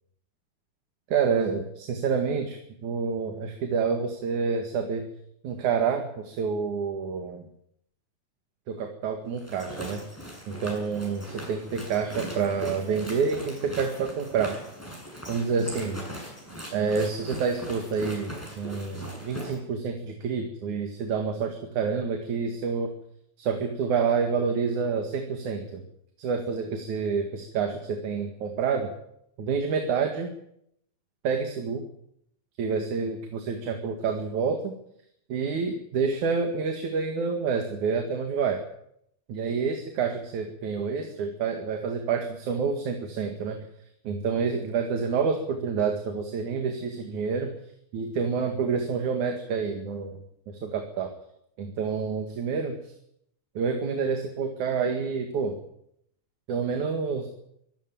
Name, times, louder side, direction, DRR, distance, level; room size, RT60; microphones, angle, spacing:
voice 1, 1.1-5.1 5.4-7.5 8.7-10.0 10.5-14.6 15.3-16.0 16.7-22.9 23.4-25.8 26.2-28.9 29.4-30.3 31.2-31.8 32.6-34.7 35.3-38.6 39.3-43.6 44.1-47.5 47.9-50.2 50.5-51.1 51.6-52.9 53.6-55.5 56.5-57.3, right 5 dB, 80° right, 4 dB, 3.4 m, -28 dB
sound 1, 9.3-19.6, equal, 5° left, 7.6 m, -40 dB
24.0 x 14.5 x 9.2 m, 0.74 s
omnidirectional pair, 3.4 m